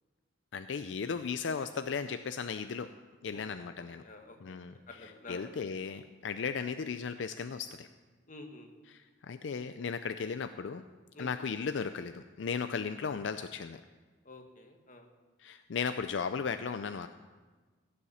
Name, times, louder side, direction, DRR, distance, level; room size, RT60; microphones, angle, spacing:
voice 1, 0.5-2.9 3.2-4.0 4.4-7.9 8.9-10.8 11.2-13.8 15.4-17.1, left 5 dB, 75° left, 10 dB, 0.4 m, -36 dB
voice 2, 3.8-4.6 4.9-5.5 8.3-8.7 11.1-11.3 14.2-15.1, left 2 dB, 45° left, 4 dB, 1.5 m, -49 dB
16.0 x 7.0 x 7.1 m, 1.4 s
head